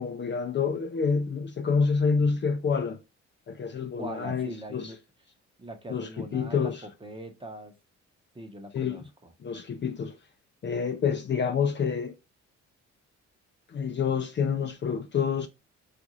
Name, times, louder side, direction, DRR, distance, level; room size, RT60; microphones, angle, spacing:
voice 1, 0.0-3.0 3.5-4.9 5.9-6.8 8.7-9.0 9.4-10.1 10.6-12.1 13.7-15.5, left 5 dB, 40° left, 0.5 m, -28 dB
voice 2, 4.0-5.0 5.6-7.7 8.3-9.3, right 1 dB, 15° right, 0.8 m, -41 dB
3.6 x 2.5 x 2.9 m
cardioid pair, 90°, 30 cm